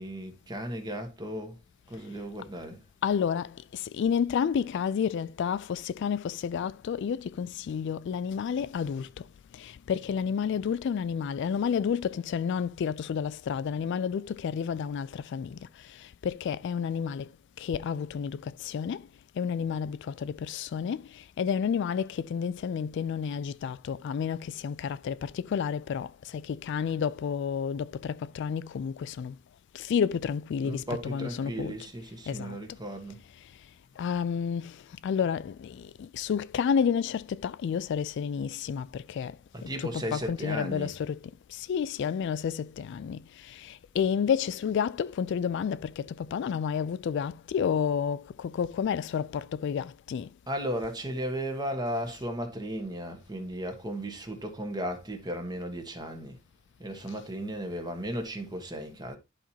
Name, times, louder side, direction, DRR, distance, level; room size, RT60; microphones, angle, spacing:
voice 1, 0.0-1.6 1.9-2.8 30.6-33.2 39.5-40.9 50.5-56.4 56.8-59.2, equal, 20° right, 1.3 m, -35 dB
voice 2, 3.0-9.1 9.5-15.7 16.0-17.3 17.6-19.0 19.4-29.4 29.7-31.8 32.3-32.6 34.0-39.4 39.6-41.2 41.5-50.3, left 7 dB, 60° left, 0.3 m, -30 dB
11.5 x 4.3 x 2.9 m
head